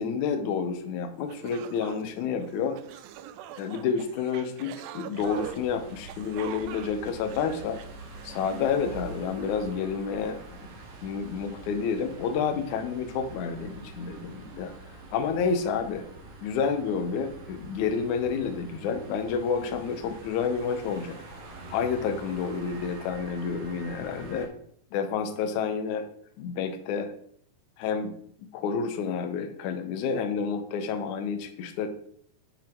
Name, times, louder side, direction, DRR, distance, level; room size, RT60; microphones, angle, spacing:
voice 1, 0.0-2.8 3.6-7.8 8.2-10.4 11.0-14.7 15.1-16.0 16.4-21.2 21.7-24.5 24.9-26.1 26.4-27.1 27.8-31.9, left 6 dB, 70° left, 6 dB, 1.9 m, -29 dB
sound 1, 0.9-1.0 1.3-8.4, right 11 dB, 80° right, 2.0 m, -43 dB
sound 2, 5.1-24.5, right 3 dB, 55° right, 1.9 m, -45 dB
7.8 x 5.5 x 4.4 m, 0.62 s
omnidirectional pair, 4.4 m